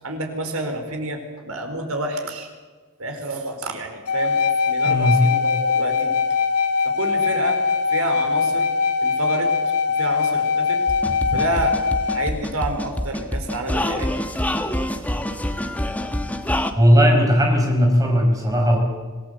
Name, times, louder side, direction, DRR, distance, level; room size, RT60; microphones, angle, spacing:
voice 1, 0.0-2.5 3.0-6.1 6.8-7.6 7.9-8.7 9.0-9.5 10.0-10.8 11.0-11.8 12.1-14.1, right 1 dB, 75° right, 4 dB, 4.6 m, -29 dB
sound 1, 4.1-12.3, left 5 dB, 85° left, 1.8 m, -21 dB
voice 2, 4.8-5.2 16.8-18.8, equal, 15° right, 1 dB, 5.7 m, -17 dB
sound 2, 10.9-16.7, left 1 dB, 5° left, 1.3 m, -26 dB
26.0 x 17.5 x 8.3 m, 1.5 s
head